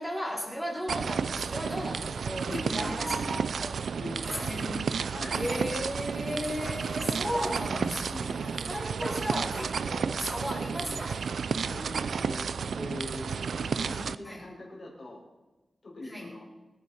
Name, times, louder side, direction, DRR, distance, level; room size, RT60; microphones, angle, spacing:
voice 1, 0.0-3.4 4.2-4.9 5.3-11.3 13.9-14.5 16.0-16.3, equal, ahead, -4 dB, 4.5 m, -35 dB
sound 1, 0.9-14.1, right 6 dB, 85° right, 0.5 m, -32 dB
voice 2, 2.5-3.4 3.9-4.6 5.1-5.5 8.1-8.5 11.7-15.2 15.8-16.4, left 2 dB, 45° left, -2 dB, 5.7 m, -42 dB
sound 2, 2.8-3.8 4.3-4.5 6.6-8.0 9.0-9.8 10.2-10.5 11.0-11.3, right 1 dB, 15° right, 1.0 m, -41 dB
25.0 x 10.5 x 4.5 m, 1.1 s
wide cardioid pair, 165°, 0 cm